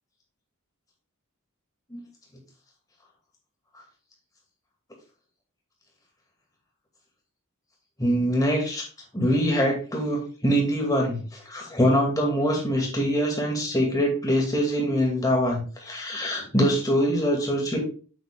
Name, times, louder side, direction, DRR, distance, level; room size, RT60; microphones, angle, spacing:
voice 1, 8.0-8.8 9.1-11.2 11.5-17.8, equal, 15° left, 0 dB, 2.5 m, -24 dB
7.7 x 5.8 x 3.7 m, 0.37 s
head